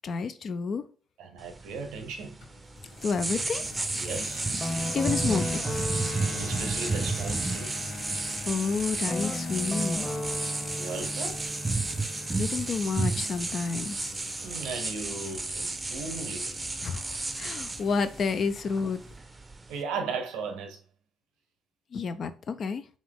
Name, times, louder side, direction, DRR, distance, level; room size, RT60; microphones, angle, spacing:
voice 1, 0.0-0.8 3.0-3.6 4.9-5.9 8.5-10.1 12.4-14.1 16.8-19.0 21.9-22.8, left 5 dB, 55° left, 0.4 m, -30 dB
voice 2, 1.2-2.4 4.0-4.5 6.2-7.9 10.8-11.4 14.4-16.6 19.7-20.8, right 4 dB, 75° right, 0.7 m, -36 dB
sound 1, 1.4-19.8, right 3 dB, 25° right, 0.6 m, -33 dB
sound 2, 2.4-19.2, left 2 dB, 75° left, 1.7 m, -43 dB
Guitar, 4.6-8.4 9.0-13.8, left 1 dB, 10° left, 0.9 m, -36 dB
3.8 x 2.5 x 3.5 m
hypercardioid pair, 50°, 0 cm